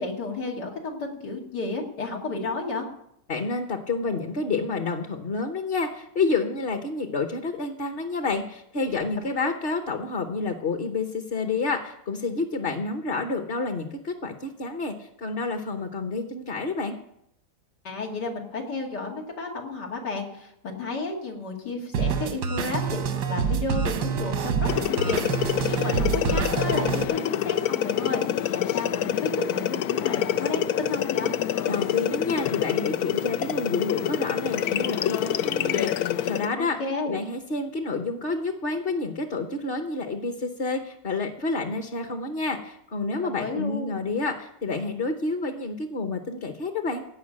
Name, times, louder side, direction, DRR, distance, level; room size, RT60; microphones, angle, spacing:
voice 1, 0.0-2.9 9.4-9.5 17.8-28.2 28.5-31.3 36.6-37.2 43.2-43.9, left 3 dB, 85° left, -1 dB, 3.1 m, -32 dB
voice 2, 3.3-17.0 31.7-36.8 37.0-47.0, left 3 dB, 40° left, 5 dB, 1.1 m, -29 dB
sound 1, 21.9-27.0, right 6 dB, 90° right, 1.6 m, -27 dB
sound 2, 24.7-36.5, left 10 dB, 70° left, 1.1 m, -26 dB
17.0 x 5.7 x 8.7 m, 0.76 s
omnidirectional pair, 1.7 m